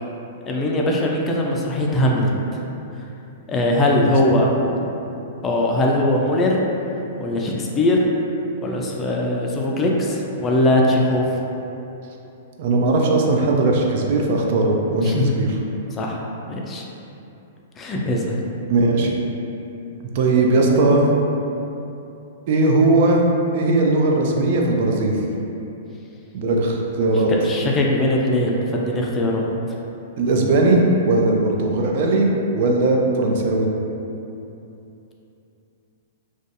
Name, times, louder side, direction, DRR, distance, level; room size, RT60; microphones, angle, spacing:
voice 1, 0.5-2.3 3.5-4.5 5.4-6.6 7.2-8.0 8.6-11.3 15.0-15.4 15.9-16.2 16.5-16.8 17.8-18.4 27.3-29.5, left 1 dB, 20° left, -2 dB, 0.3 m, -20 dB
voice 2, 12.6-15.6 18.7-19.1 20.1-21.1 22.5-23.3 23.5-25.2 26.3-27.3 30.2-32.3 32.5-33.7, right 2 dB, 55° right, 0 dB, 0.3 m, -18 dB
2.4 x 2.2 x 2.6 m, 2.9 s
hypercardioid pair, 120°, 0 cm